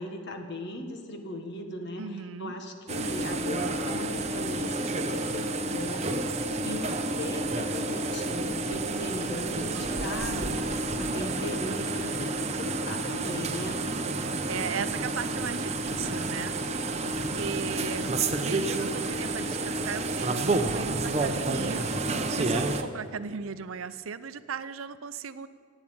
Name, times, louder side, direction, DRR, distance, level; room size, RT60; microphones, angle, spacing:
voice 1, 0.0-13.8, left 1 dB, 55° left, 4 dB, 1.5 m, -38 dB
voice 2, 2.0-2.5 9.7-10.4 14.5-16.5 17.0-21.9 22.4-25.5, right 6 dB, 75° right, 13 dB, 0.6 m, -37 dB
sound 1, 2.9-22.8, right 2 dB, 30° right, 0.7 m, -30 dB
12.5 x 8.9 x 8.7 m, 2.1 s
head